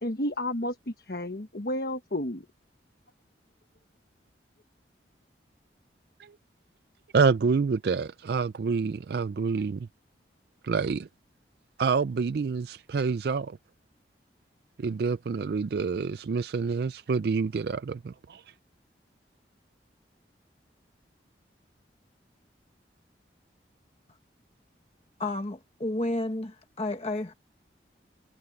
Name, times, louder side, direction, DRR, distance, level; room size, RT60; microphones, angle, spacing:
voice 1, 0.0-2.5, left 1 dB, 55° left, 1.3 m, -31 dB
voice 2, 7.1-9.9 10.6-11.1 11.8-13.6 14.8-18.4, right 5 dB, 60° right, 0.4 m, -27 dB
voice 3, 25.2-27.3, left 2 dB, 35° left, 1.2 m, -31 dB
head